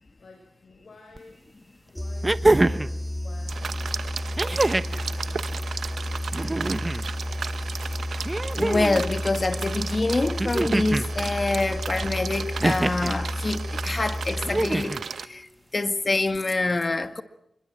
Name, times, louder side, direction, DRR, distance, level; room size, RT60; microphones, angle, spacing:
voice 1, 0.2-1.4 1.9-3.7 4.3-6.9, left 2 dB, 65° left, 6.6 m, -51 dB
sound 1, 1.2-1.3 2.2-2.9 4.4-5.0 6.3-7.0 8.2-9.0 10.4-11.1 12.6-13.1 14.4-15.0 16.3-16.4, right 2 dB, 30° right, 1.1 m, -24 dB
sound 2, 2.0-15.1, left 1 dB, 5° left, 3.4 m, -32 dB
sound 3, 3.5-15.3, right 6 dB, 80° right, 1.1 m, -35 dB
voice 2, 8.6-17.2, left 2 dB, 40° left, 2.0 m, -26 dB
26.0 x 22.5 x 7.6 m
cardioid pair, 45°, 0 cm